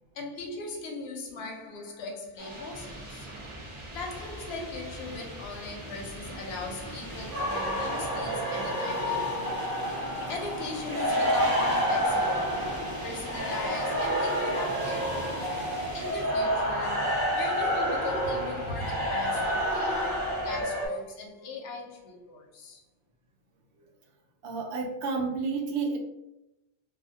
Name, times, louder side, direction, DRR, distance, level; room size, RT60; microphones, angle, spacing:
voice 1, 0.1-3.3 3.9-9.6 10.3-15.5 15.9-22.8, left 3 dB, 65° left, 0.8 m, -39 dB
sound 1, 2.4-20.6, right 1 dB, 40° right, 0.5 m, -44 dB
sound 2, 3.9-16.2, right 1 dB, 30° left, 0.4 m, -42 dB
sound 3, 7.3-20.9, equal, 55° right, 1.3 m, -29 dB
voice 2, 24.4-26.0, right 4 dB, 70° right, 0.8 m, -30 dB
2.4 x 2.1 x 2.6 m
omnidirectional pair, 1.2 m